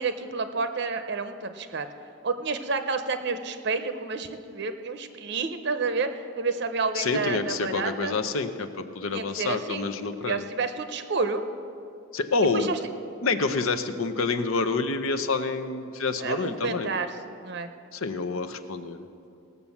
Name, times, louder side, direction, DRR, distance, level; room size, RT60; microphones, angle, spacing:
voice 1, 0.0-1.9 2.2-8.1 9.1-9.8 10.2-11.4 12.5-12.8 16.2-17.7, right 4 dB, 50° right, 9 dB, 0.6 m, -30 dB
voice 2, 7.0-10.5 12.1-12.7 13.2-16.9 17.9-19.0, left 4 dB, 75° left, 9 dB, 0.8 m, -28 dB
18.0 x 6.8 x 7.1 m, 2.5 s
head